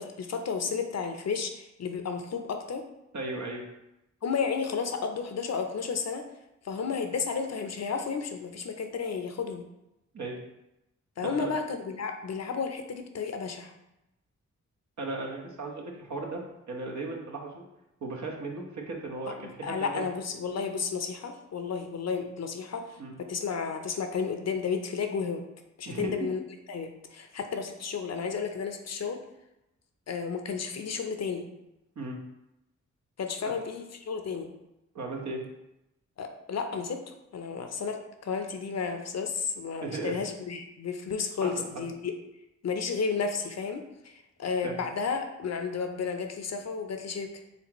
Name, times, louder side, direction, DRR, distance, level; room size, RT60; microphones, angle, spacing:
voice 1, 0.0-2.8 4.2-6.2 6.6-9.6 11.2-13.7 19.4-25.4 25.8-26.4 26.7-29.2 30.1-31.5 33.2-34.5 36.2-38.0 38.2-42.1 42.6-47.3, left 5 dB, 60° left, 6 dB, 0.6 m, -32 dB
voice 2, 3.1-3.6 10.1-10.4 11.2-11.5 15.0-16.4 16.7-17.6 18.0-20.1 23.0-23.1 25.8-26.3 32.0-32.2 33.4-33.5 34.9-35.4 39.8-40.2 41.4-41.5 44.6-44.7, right 3 dB, 65° right, -1 dB, 1.0 m, -36 dB
4.3 x 3.7 x 3.0 m, 0.90 s
cardioid pair, 50°, 30 cm